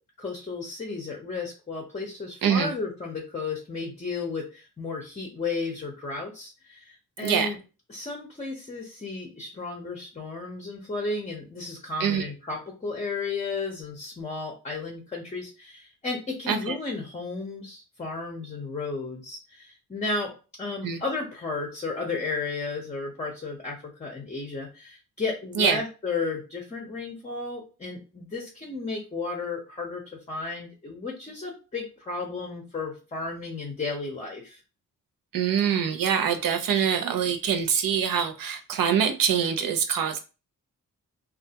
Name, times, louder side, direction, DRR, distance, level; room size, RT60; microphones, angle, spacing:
voice 1, 0.2-7.6 7.9-20.3 20.6-30.0 30.3-34.6, left 3 dB, 20° left, 0 dB, 0.6 m, -33 dB
voice 2, 2.4-2.7 7.2-7.5 12.0-12.3 16.5-16.8 20.8-21.0 25.6-25.8 35.3-40.2, right 7 dB, 85° right, 7 dB, 0.6 m, -24 dB
3.3 x 2.4 x 2.7 m, 0.33 s
wide cardioid pair, 160°, 33 cm